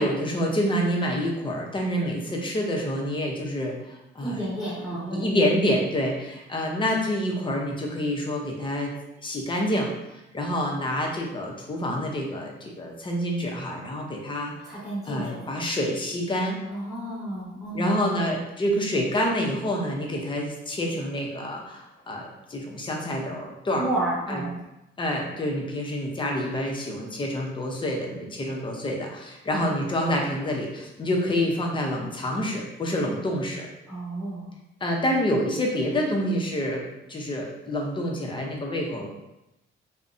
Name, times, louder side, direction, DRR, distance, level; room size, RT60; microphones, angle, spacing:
voice 1, 0.0-4.5 5.1-8.9 9.2-9.9 10.3-14.5 15.1-16.6 17.7-23.9 24.3-24.4 25.0-33.7 34.8-36.8 37.1-39.1, equal, 25° left, 0 dB, 0.5 m, -27 dB
voice 2, 4.2-5.3 14.7-15.5 16.7-18.0 23.8-24.5 33.9-34.5, right 1 dB, ahead, -9 dB, 1.0 m, -31 dB
2.5 x 2.0 x 2.5 m, 0.91 s
cardioid pair, 90°, 20 cm